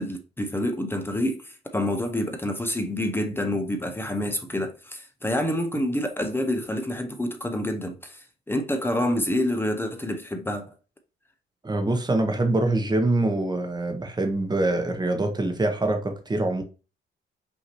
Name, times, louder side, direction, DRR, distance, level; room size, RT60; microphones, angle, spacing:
voice 1, 0.0-10.7, left 1 dB, 10° left, 0.7 m, -27 dB
voice 2, 11.6-16.6, right 2 dB, 20° right, 1.0 m, -24 dB
5.5 x 2.8 x 2.9 m
cardioid pair, 90°, 20 cm